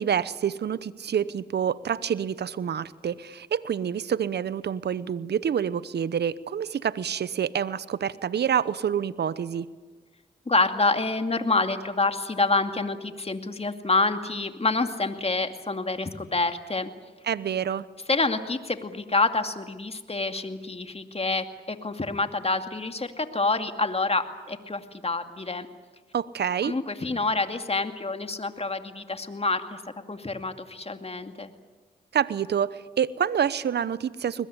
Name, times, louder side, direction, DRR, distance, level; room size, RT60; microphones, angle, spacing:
voice 1, 0.0-9.7 17.2-17.8 26.1-26.7 32.1-34.5, right 8 dB, 75° right, 18 dB, 0.9 m, -27 dB
voice 2, 10.5-16.9 18.1-25.7 26.6-29.8 30.1-31.5, left 3 dB, 35° left, 7 dB, 2.4 m, -27 dB
21.5 x 21.0 x 9.8 m, 1.3 s
supercardioid pair, 45°, 17 cm